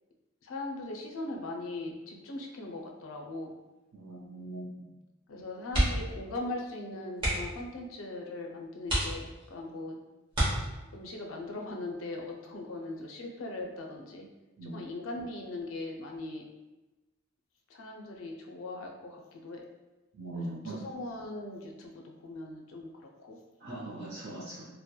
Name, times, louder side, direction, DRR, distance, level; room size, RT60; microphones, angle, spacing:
voice 1, 0.4-3.5 5.3-10.0 10.9-14.3 14.6-16.5 17.7-19.7 20.3-23.4, left 2 dB, 80° left, 1 dB, 0.4 m, -40 dB
voice 2, 3.9-4.8 14.6-14.8 20.1-20.8 23.6-24.6, right 2 dB, 55° right, -8 dB, 0.5 m, -40 dB
sound 1, 5.7-6.2 6.5-6.7 7.1-7.6 8.2-8.3 8.8-9.6 10.3-11.1 12.6-13.0 13.3-13.4, right 1 dB, 25° right, 0.9 m, -30 dB
2.8 x 2.1 x 2.2 m, 1.1 s
head